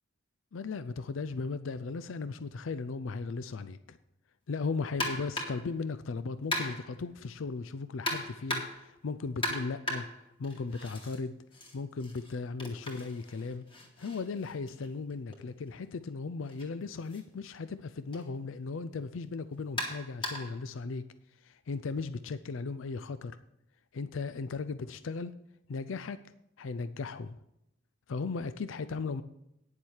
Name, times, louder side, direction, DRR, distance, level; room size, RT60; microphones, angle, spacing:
voice 1, 0.5-4.0 4.5-10.1 10.4-11.4 11.7-13.6 14.0-21.0 21.4-23.4 23.9-25.3 25.7-26.2 26.6-27.4 28.1-29.2, left 4 dB, 75° left, 12 dB, 0.5 m, -37 dB
sound 1, 5.0-5.7 6.5-7.0 8.1-8.9 9.4-11.2 11.5-15.4 16.5-16.6 17.1-17.2 18.1-18.3 19.8-20.6, left 1 dB, 25° left, 2.2 m, -37 dB
9.7 x 7.3 x 6.4 m, 0.81 s
head